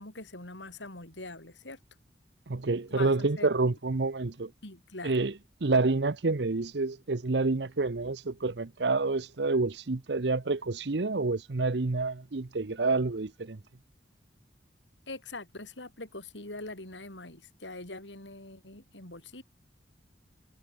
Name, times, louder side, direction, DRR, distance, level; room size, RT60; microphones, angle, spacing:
voice 1, 0.0-1.8 2.9-3.1 3.4-3.5 4.6-5.1 15.1-19.4, left 2 dB, 85° left, 6.8 m, -43 dB
voice 2, 2.5-4.5 5.0-5.3 5.6-13.6, right 3 dB, 70° right, 0.8 m, -28 dB
head